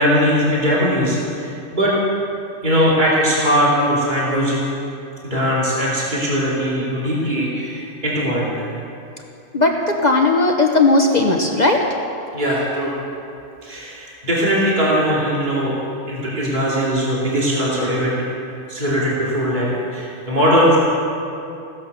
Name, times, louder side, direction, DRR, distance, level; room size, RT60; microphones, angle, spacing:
voice 1, 0.0-1.9 2.6-4.6 5.2-8.7 12.3-12.9 13.6-15.7 16.1-18.2 18.7-20.8, equal, 40° right, -6 dB, 3.0 m, -20 dB
voice 2, 9.5-11.8, left 2 dB, 40° left, 2 dB, 1.1 m, -16 dB
16.0 x 11.5 x 6.8 m, 2.7 s
omnidirectional pair, 1.2 m